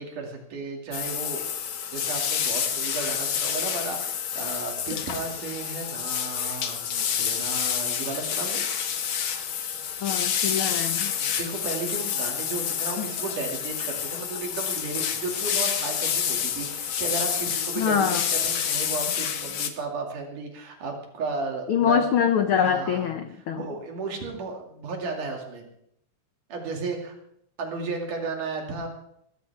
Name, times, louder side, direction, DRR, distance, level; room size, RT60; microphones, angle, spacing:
voice 1, 0.0-1.5 1.9-8.6 11.2-22.0 22.6-23.1 23.5-25.6 26.5-27.1 27.6-28.9, right 4 dB, 75° right, 2 dB, 4.1 m, -34 dB
sound 1, 0.9-19.7, left 8 dB, 60° left, 1.4 m, -28 dB
voice 2, 10.0-11.1 13.0-13.1 17.8-18.2 21.7-23.6, left 7 dB, 85° left, 8 dB, 1.1 m, -24 dB
20.0 x 14.5 x 3.6 m, 0.74 s
omnidirectional pair, 3.7 m